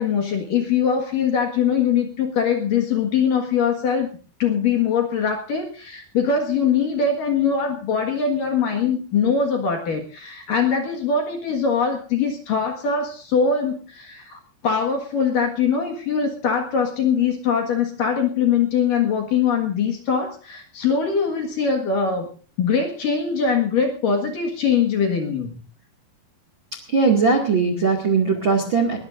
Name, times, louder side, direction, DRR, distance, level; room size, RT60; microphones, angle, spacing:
voice 1, 0.0-4.1 4.4-22.3 22.6-25.5, left 6 dB, 60° left, 3 dB, 2.7 m, -22 dB
voice 2, 26.9-29.0, right 4 dB, 40° right, 4 dB, 1.7 m, -19 dB
21.0 x 19.0 x 2.6 m, 0.40 s
omnidirectional pair, 5.7 m